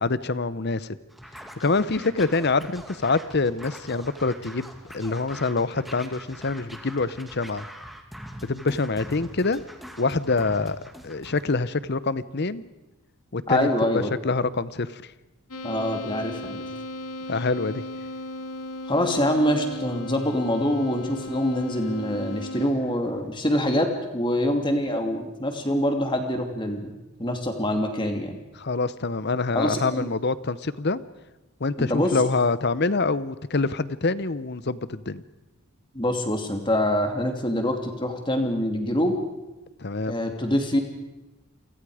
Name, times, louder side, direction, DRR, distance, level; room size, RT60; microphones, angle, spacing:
voice 1, 0.0-1.0 1.6-7.6 8.4-9.6 10.0-10.8 11.0-12.6 13.3-13.7 13.9-15.0 17.3-17.8 28.6-31.0 31.6-35.2 39.8-40.1, left 3 dB, 50° left, 16 dB, 0.8 m, -25 dB
Scratching (performance technique), 1.1-11.4, equal, ahead, 1.8 m, -43 dB
voice 2, 13.5-14.1 15.6-16.6 18.9-26.9 27.2-28.4 29.5-30.1 31.8-32.2 35.9-39.2 40.1-40.8, left 1 dB, 20° left, 4 dB, 2.7 m, -25 dB
sound 1, 15.5-22.7, left 2 dB, 75° left, 2.7 m, -36 dB
29.5 x 23.5 x 5.0 m, 1.1 s
head